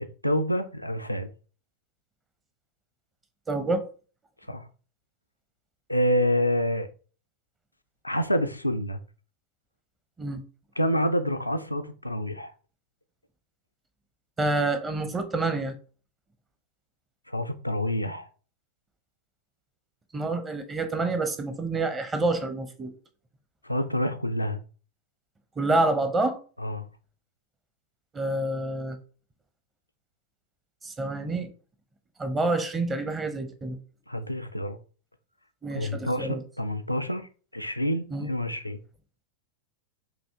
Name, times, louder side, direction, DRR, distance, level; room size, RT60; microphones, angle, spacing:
voice 1, 0.2-1.3 4.5-4.7 5.9-6.9 8.0-9.0 10.8-12.5 17.3-18.3 23.6-24.6 26.6-26.9 34.1-34.8 35.7-38.8, equal, 85° left, 0.4 m, -27 dB
voice 2, 3.5-3.8 10.2-10.4 14.4-15.8 20.1-22.9 25.6-26.4 28.1-29.0 30.8-31.5 32.2-33.8 35.6-36.4 38.1-38.3, right 2 dB, 15° right, 0.7 m, -27 dB
5.2 x 2.7 x 3.5 m
figure-of-eight pair, 90°, 0 cm